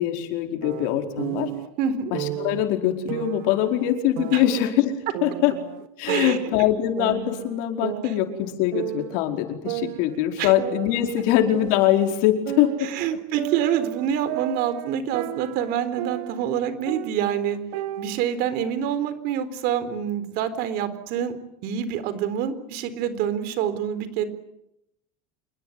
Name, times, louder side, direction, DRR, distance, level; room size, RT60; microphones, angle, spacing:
voice 1, 0.0-1.5 2.1-5.5 6.0-12.9, left 12 dB, 70° left, 4 dB, 4.9 m, -23 dB
sound 1, 0.6-1.7 2.1-2.6 3.1-4.7 5.1-6.7 7.0-8.5 8.7-9.2 9.6-12.1 12.4-16.6 16.9-18.2, right 17 dB, 80° right, 1.3 m, -34 dB
voice 2, 1.8-2.1 4.3-4.4 6.1-6.4 10.4-10.5 12.9-17.6 18.0-21.4 21.6-24.2, right 9 dB, 60° right, 13 dB, 4.0 m, -26 dB
27.5 x 22.0 x 9.6 m, 0.83 s
supercardioid pair, 135°, 18 cm